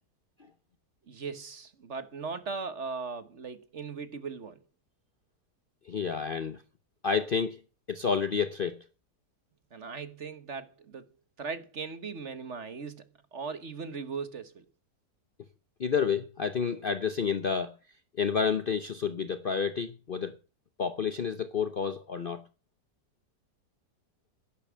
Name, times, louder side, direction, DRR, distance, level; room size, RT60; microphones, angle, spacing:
voice 1, 1.1-4.6 9.7-11.1 11.4-14.7, right 5 dB, 45° right, 1.4 m, -38 dB
voice 2, 5.8-6.6 7.0-7.6 7.9-8.8 15.8-17.8 18.2-20.4 20.8-22.4, left 6 dB, 45° left, 0.7 m, -29 dB
11.0 x 10.5 x 7.5 m
omnidirectional pair, 1.8 m